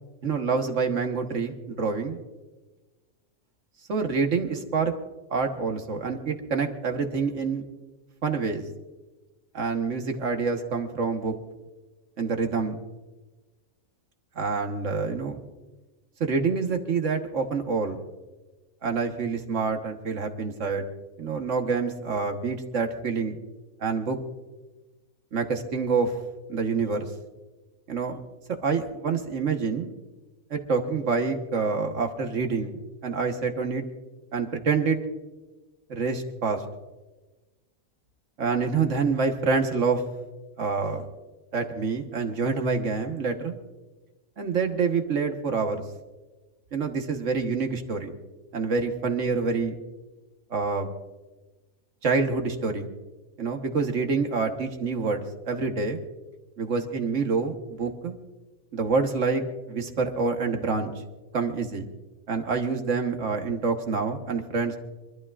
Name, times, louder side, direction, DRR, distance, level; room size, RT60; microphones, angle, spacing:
voice 1, 0.2-2.2 3.9-4.9 5.3-7.6 8.2-8.6 9.5-11.4 12.2-12.8 14.4-15.4 16.2-18.0 18.8-20.8 21.2-23.4 23.8-24.2 25.3-26.1 26.5-27.1 27.9-28.2 28.6-29.9 30.5-33.8 34.3-35.0 35.9-36.6 38.4-40.0 40.6-41.1 41.5-43.5 44.4-45.8 46.7-48.1 48.5-49.8 50.5-50.9 52.0-52.9 53.4-56.0 56.6-58.1 58.7-60.9 61.3-61.8 62.3-64.8, right 4 dB, 60° right, 5 dB, 1.6 m, -27 dB
27.0 x 12.0 x 2.5 m, 1.2 s
omnidirectional pair, 1.5 m